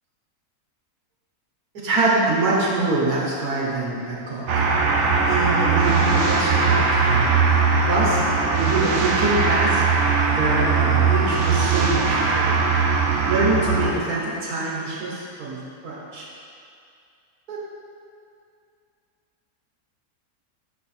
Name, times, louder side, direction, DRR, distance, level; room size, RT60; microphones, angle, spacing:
voice 1, 1.8-4.6 5.3-7.4 7.9-9.9 10.3-12.6 13.3-16.3 17.5-17.6, right 2 dB, 80° right, -4 dB, 1.6 m, -25 dB
sound 1, 4.5-13.9, right 4 dB, 60° right, 0.9 m, -20 dB
5.6 x 4.6 x 4.2 m, 2.4 s
omnidirectional pair, 1.6 m